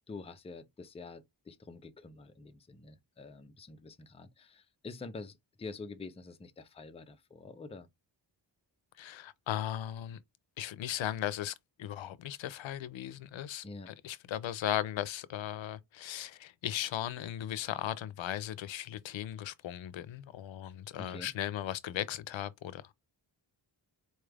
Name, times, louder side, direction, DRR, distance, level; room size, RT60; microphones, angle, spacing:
voice 1, 0.1-7.9 13.6-13.9 21.0-21.3, left 3 dB, 15° left, 0.4 m, -47 dB
voice 2, 9.0-10.2 10.6-22.9, left 11 dB, 85° left, 0.5 m, -37 dB
4.3 x 2.4 x 3.2 m
wide cardioid pair, 155°, 45 cm